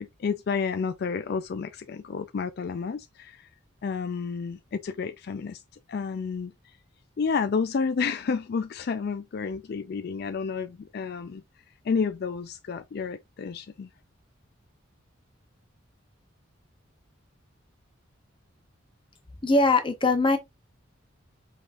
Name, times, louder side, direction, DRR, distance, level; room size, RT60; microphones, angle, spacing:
voice 1, 0.2-3.4 3.8-5.6 5.9-6.5 7.2-11.4 11.9-13.9, left 5 dB, 50° left, 0.3 m, -30 dB
voice 2, 19.4-20.4, left 2 dB, 25° left, 0.9 m, -21 dB
5.2 x 3.6 x 2.5 m
head